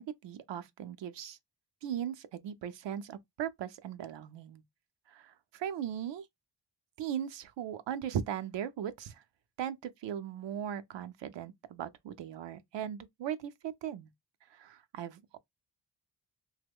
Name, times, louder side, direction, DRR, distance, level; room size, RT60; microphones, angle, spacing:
voice 1, 0.0-1.4 1.8-4.6 5.1-6.3 7.0-9.2 9.6-14.1 14.5-15.4, right 9 dB, 80° right, 0.5 m, -38 dB
2.9 x 2.1 x 3.5 m
wide cardioid pair, 95°, 43 cm